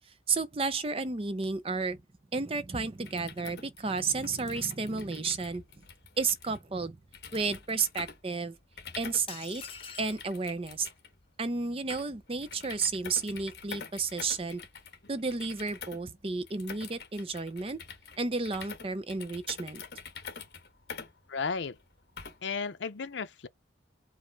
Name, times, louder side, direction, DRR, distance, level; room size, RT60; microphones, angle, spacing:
voice 1, 0.3-2.0 2.3-5.6 6.2-7.0 7.3-8.6 9.0-9.6 10.0-10.9 11.4-14.6 15.1-17.8 18.2-19.8, right 4 dB, 30° right, 0.5 m, -32 dB
sound 1, 3.0-22.6, left 5 dB, 60° left, 1.3 m, -47 dB
sound 2, 9.3-10.3, left 6 dB, 30° left, 0.9 m, -44 dB
voice 2, 21.3-21.8 22.4-23.5, left 5 dB, 80° left, 0.6 m, -34 dB
5.0 x 2.1 x 4.6 m
head